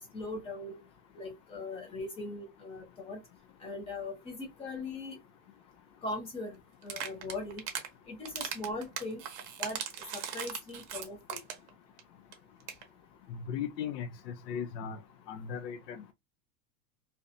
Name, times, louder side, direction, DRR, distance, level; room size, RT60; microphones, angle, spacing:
voice 1, 0.1-0.8 1.1-3.2 3.6-5.2 6.0-6.6 6.8-7.6 8.1-9.2 9.6-9.8 10.1-11.4, left 2 dB, 15° left, 0.4 m, -40 dB
sound 1, 6.8-7.9 8.2-11.7 12.0-12.1 12.3-12.4 12.6-12.8, right 8 dB, 45° right, 0.7 m, -38 dB
voice 2, 13.3-14.1 14.5-15.0 15.3-16.0, left 8 dB, 75° left, 0.6 m, -37 dB
2.5 x 2.1 x 2.5 m
supercardioid pair, 135°, 49 cm